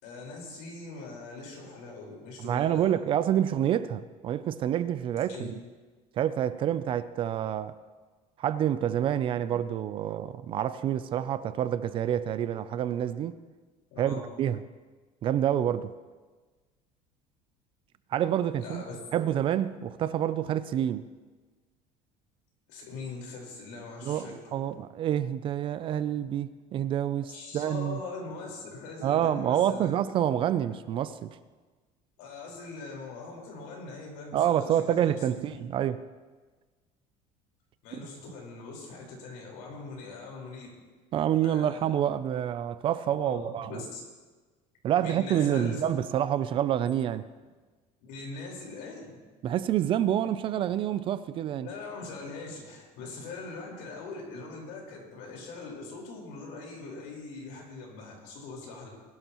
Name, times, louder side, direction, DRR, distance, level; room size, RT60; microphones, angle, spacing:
voice 1, 0.0-3.0 5.3-5.5 13.9-14.3 18.6-19.0 22.7-24.5 27.3-29.9 32.2-35.6 37.8-40.8 41.3-41.8 43.2-44.0 45.0-45.9 48.0-49.2 51.6-58.9, left 3 dB, 75° left, 4.5 m, -42 dB
voice 2, 2.4-5.6 6.2-7.7 8.4-13.3 14.0-14.6 15.2-15.9 18.1-18.8 19.1-21.1 24.0-28.0 29.0-31.3 34.3-36.0 37.9-38.0 41.1-43.8 44.8-47.3 49.4-51.7, right 10 dB, 35° right, 0.4 m, -28 dB
20.5 x 12.0 x 3.0 m
cardioid pair, 165°, 15 cm